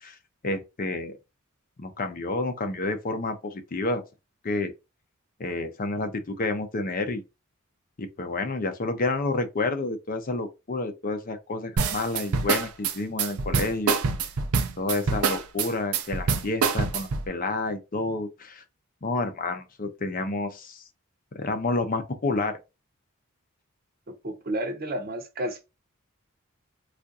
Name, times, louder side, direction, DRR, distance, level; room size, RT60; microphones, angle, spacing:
voice 1, 0.4-1.2 1.8-4.0 4.4-4.7 5.4-7.2 8.0-14.0 14.8-18.6 19.0-20.8 21.3-22.6, left 2 dB, 40° left, 0.6 m, -29 dB
sound 1, 11.8-17.3, right 5 dB, 85° right, 0.6 m, -25 dB
voice 2, 24.2-25.7, right 1 dB, 45° right, 0.8 m, -31 dB
3.5 x 2.5 x 2.6 m
head